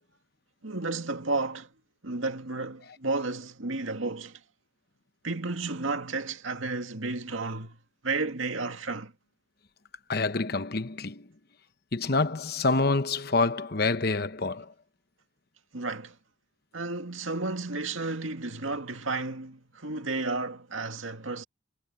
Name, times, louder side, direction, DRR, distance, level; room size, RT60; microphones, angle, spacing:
voice 1, 0.6-1.7 2.0-4.4 5.2-9.1 15.7-16.2 16.7-21.4, right 3 dB, 75° right, 2.2 m, -32 dB
voice 2, 10.1-11.3 11.9-14.7, left 3 dB, 50° left, 1.0 m, -27 dB
head